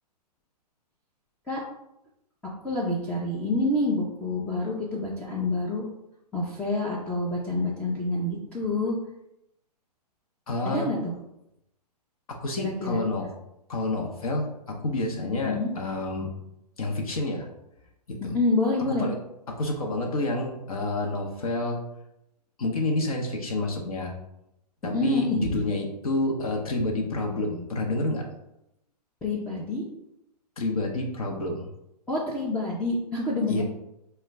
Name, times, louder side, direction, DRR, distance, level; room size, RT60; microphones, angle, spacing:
voice 1, 2.6-5.8 6.3-9.0 10.6-11.1 12.6-13.0 15.4-15.7 18.3-19.1 24.9-25.4 29.2-29.9 32.1-33.6, left 2 dB, 5° left, -5 dB, 0.4 m, -27 dB
voice 2, 10.5-10.9 12.3-13.3 13.7-16.3 16.8-17.5 18.1-18.4 18.8-19.2 19.5-21.8 22.6-24.1 24.8-28.3 30.6-31.7 33.5-33.6, left 2 dB, 60° left, 1 dB, 0.7 m, -29 dB
4.6 x 2.2 x 3.2 m, 0.84 s
figure-of-eight pair, 115°, 21 cm